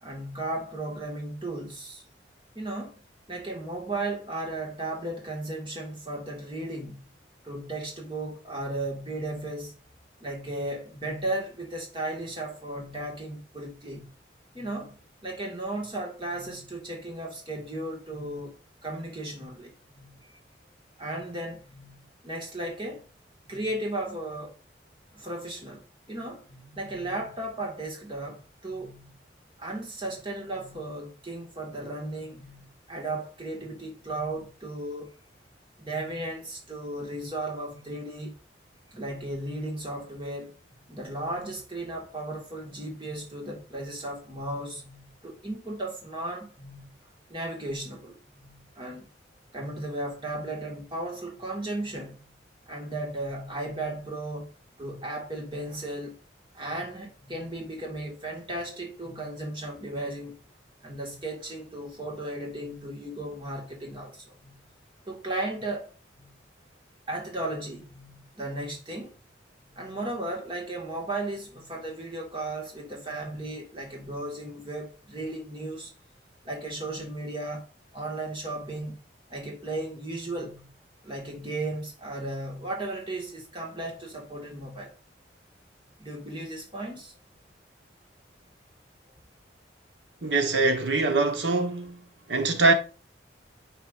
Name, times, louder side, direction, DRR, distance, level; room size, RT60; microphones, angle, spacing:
voice 1, 0.0-2.0 2.6-3.0 3.3-7.1 7.4-9.7 10.2-14.1 14.5-15.0 15.2-18.6 18.8-20.4 21.0-23.1 23.4-24.6 25.1-29.1 29.6-35.1 35.8-38.4 38.9-40.5 40.9-46.9 47.3-49.1 49.5-52.3 52.7-54.5 54.8-56.2 56.5-60.4 60.8-64.6 65.1-66.3 67.1-69.1 69.7-75.9 76.4-77.7 77.9-79.0 79.3-80.7 81.0-84.9 86.0-87.2, right 2 dB, 25° right, 2.0 m, -35 dB
voice 2, 90.2-92.0 92.3-92.7, right 3 dB, 80° right, 1.3 m, -23 dB
9.0 x 4.7 x 2.6 m
head